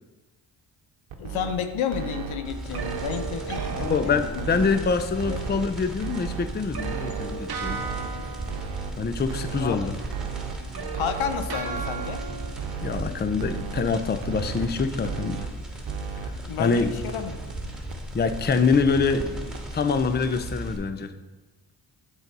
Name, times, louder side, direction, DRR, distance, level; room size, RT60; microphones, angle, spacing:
sound 1, 1.1-1.5 1.9-2.3 2.7-3.2 3.6-4.0 4.4-4.8 5.2-5.6 6.0-6.4 6.8-7.3 7.7-8.1 8.5-8.9 9.3-9.7 10.1-10.5 10.9-11.4 11.8-12.2 12.6-13.0 13.4-13.8 14.2-14.7 15.0-15.5 15.9-16.3 16.7-16.8 17.1-17.2 17.5-17.6 17.9-18.0 18.3-18.4 18.7-18.8 19.1-19.2 19.5-19.6 20.0-20.1 20.4-20.5, right 10 dB, 75° right, 0.9 m, -35 dB
voice 1, 1.2-4.7 5.3-5.4 9.6-9.9 10.9-12.2 16.5-17.5, left 8 dB, 80° left, 8 dB, 0.7 m, -31 dB
sound 2, 2.0-5.1 6.0-9.7 9.9-12.5, right 5 dB, 50° right, 0.9 m, -37 dB
sound 3, 2.4-20.8, right 1 dB, ahead, 2.5 m, -36 dB
voice 2, 3.7-7.8 9.0-9.9 12.8-15.5 16.2-16.3 16.6-16.9 18.1-21.1, left 5 dB, 20° left, 9 dB, 0.5 m, -25 dB
7.8 x 4.0 x 5.4 m, 1.2 s
supercardioid pair, 50°, 47 cm